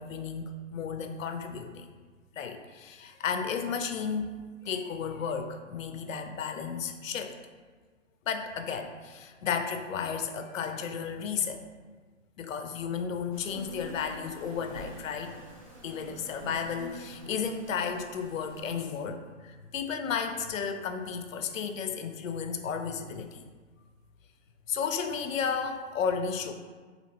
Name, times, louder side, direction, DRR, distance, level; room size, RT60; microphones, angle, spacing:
voice 1, 0.0-1.9 2.4-4.3 4.6-7.4 8.3-11.6 12.4-15.3 15.8-23.4 24.7-26.5, left 6 dB, 85° left, 6 dB, 0.6 m, -33 dB
sound 1, 13.3-18.8, equal, 30° right, 0.4 m, -46 dB
4.2 x 2.7 x 2.8 m, 1.4 s
hypercardioid pair, 175°, 38 cm